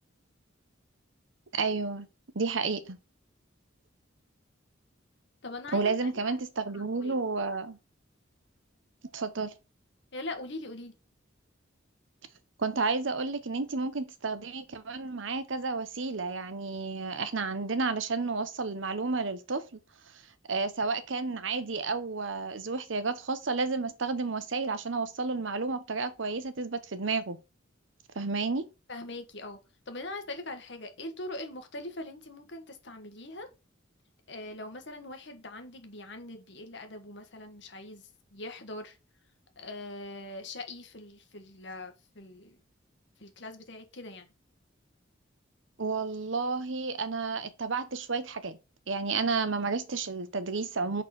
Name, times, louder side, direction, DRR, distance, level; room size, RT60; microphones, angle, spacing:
voice 1, 1.5-2.1 2.3-3.0 5.7-7.8 9.1-9.5 12.6-19.6 20.5-27.4 28.2-28.7 45.8-48.6 48.9-51.0, right 4 dB, 70° right, 0.9 m, -31 dB
voice 2, 5.4-6.4 6.7-7.2 10.1-10.9 28.9-29.6 29.9-33.5 34.3-39.0 39.6-42.6 43.2-44.3, left 2 dB, 60° left, 1.4 m, -42 dB
6.4 x 4.1 x 4.3 m
head